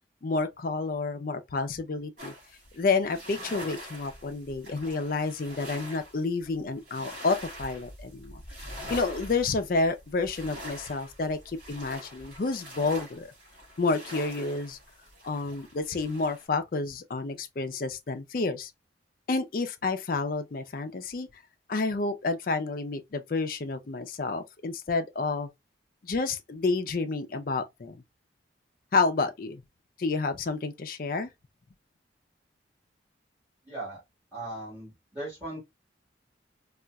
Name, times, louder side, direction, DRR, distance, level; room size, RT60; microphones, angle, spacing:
voice 1, 0.2-2.3 2.7-8.4 8.9-13.3 13.8-14.8 15.2-18.7 19.3-21.3 21.7-25.5 26.0-28.0 28.9-29.6 30.0-31.3, left 3 dB, 50° left, 0.4 m, -29 dB
sound 1, 2.2-16.5, equal, 45° right, 2.1 m, -44 dB
voice 2, 33.6-34.0 34.3-35.6, right 1 dB, 10° right, 1.6 m, -38 dB
3.9 x 2.4 x 2.2 m
head